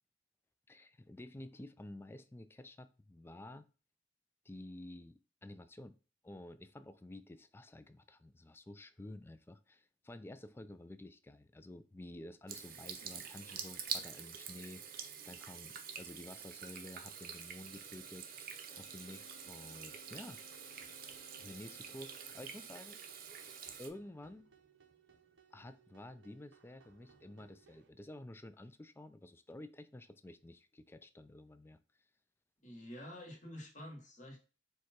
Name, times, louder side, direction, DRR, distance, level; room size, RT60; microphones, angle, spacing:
voice 1, 0.7-3.7 4.5-6.0 6.2-18.3 18.7-20.4 21.4-23.0 23.8-24.5 25.5-31.8, left 1 dB, 15° left, 0.3 m, -51 dB
Water tap faucet / Sink (filling or washing), 12.5-23.9, right 7 dB, 55° right, 0.6 m, -47 dB
Wind instrument woodwind instrument, 18.7-22.7, left 3 dB, 90° left, 0.5 m, -63 dB
sound 1, 20.4-27.9, right 6 dB, 85° right, 0.8 m, -67 dB
voice 2, 32.6-34.4, left 1 dB, 45° left, 1.6 m, -48 dB
4.7 x 2.3 x 4.3 m
head